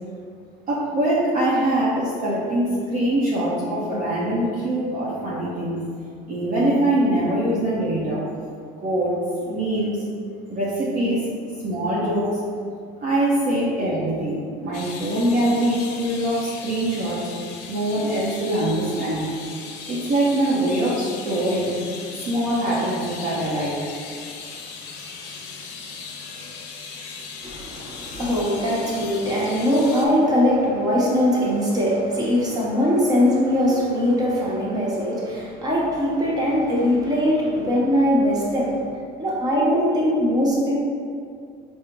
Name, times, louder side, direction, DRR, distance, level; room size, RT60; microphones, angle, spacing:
voice 1, 0.7-5.8 6.3-8.2 8.8-9.2 9.5-10.0 10.5-11.3 11.6-12.4 13.0-17.2 17.7-19.3 19.9-21.8 22.2-23.8, right 1 dB, 45° right, -7 dB, 0.7 m, -23 dB
sound 1, 14.7-30.1, left 5 dB, 65° left, 0.6 m, -38 dB
voice 2, 27.4-38.8 39.2-40.7, equal, 20° right, -6 dB, 1.0 m, -21 dB
4.9 x 2.1 x 4.5 m, 2.2 s
cardioid pair, 150°, 19 cm